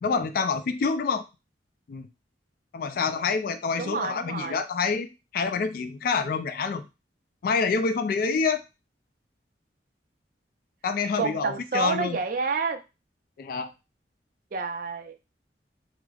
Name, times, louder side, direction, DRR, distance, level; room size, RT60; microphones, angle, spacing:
voice 1, 0.0-1.2 1.9-2.1 2.7-5.1 5.3-6.9 7.4-8.6 10.8-12.2 13.4-13.7, left 5 dB, 55° left, 9 dB, 0.3 m, -27 dB
voice 2, 3.8-4.6 11.2-12.8 14.5-15.1, right 4 dB, 50° right, 6 dB, 0.5 m, -29 dB
4.7 x 2.0 x 2.3 m, 0.27 s
head